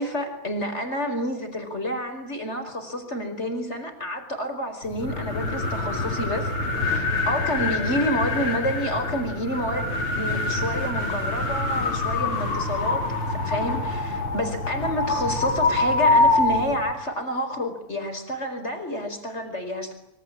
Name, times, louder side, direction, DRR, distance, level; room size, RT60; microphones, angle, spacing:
voice 1, 0.0-6.5 6.8-19.9, equal, 30° left, 7 dB, 5.2 m, -29 dB
sound 1, 4.8-17.0, left 2 dB, 75° left, 4.5 m, -25 dB
26.5 x 24.5 x 8.7 m, 0.76 s
omnidirectional pair, 2.4 m